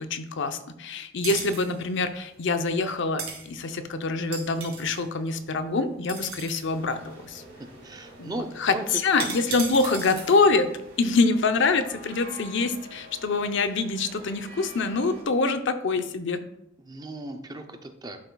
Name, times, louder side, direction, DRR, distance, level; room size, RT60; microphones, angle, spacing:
voice 1, 0.0-7.4 8.2-10.7 11.0-16.4, left 3 dB, 60° left, 8 dB, 0.6 m, -25 dB
sound 1, 1.2-12.0, right 5 dB, 85° right, 2.1 m, -40 dB
sound 2, 6.6-15.2, equal, 60° right, 2.6 m, -48 dB
voice 2, 7.8-8.8 9.2-9.3 16.8-18.2, right 1 dB, 20° right, 6 dB, 0.5 m, -37 dB
11.0 x 5.6 x 2.3 m, 0.80 s
head